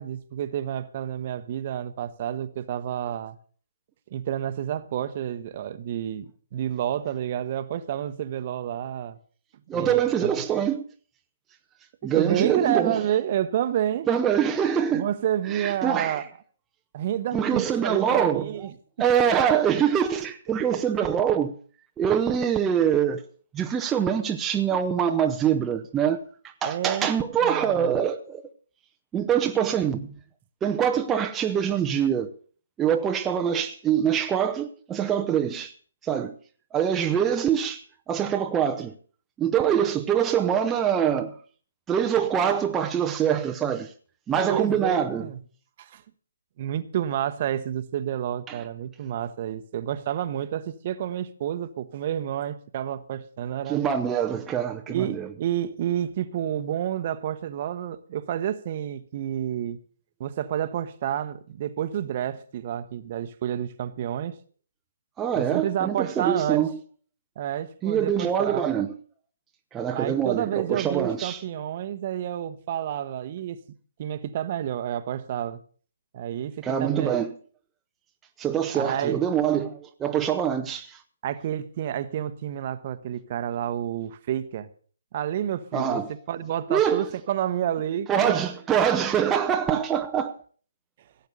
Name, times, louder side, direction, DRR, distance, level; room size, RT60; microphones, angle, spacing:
voice 1, 0.0-3.4 4.1-6.2 6.5-9.2 9.7-10.3 12.1-14.1 14.9-16.2 16.9-18.7 26.6-27.1 27.4-28.0 29.6-29.7 44.4-45.4 45.8-46.0 46.6-53.8 54.9-59.8 60.2-64.4 65.3-66.6 67.4-68.7 69.9-73.6 74.0-75.6 76.1-77.2 78.7-79.2 81.2-84.7 85.1-86.0 86.3-88.4, right 10 dB, 40° right, 1.1 m, -29 dB
voice 2, 9.7-10.8 12.0-13.0 14.1-15.1 15.5-16.2 17.3-18.5 19.0-21.5 22.0-23.2 23.5-28.4 29.1-30.1 30.6-32.3 32.8-35.7 36.0-36.4 36.7-38.9 39.4-41.4 41.9-43.9 44.3-45.3 48.5-48.6 53.7-55.3 65.2-66.8 67.8-68.9 69.7-71.4 76.6-77.3 78.4-81.0 85.7-86.1 86.7-87.1 88.1-90.4, right 8 dB, 15° right, 0.9 m, -24 dB
17.0 x 8.1 x 6.8 m
figure-of-eight pair, 140°, 0 cm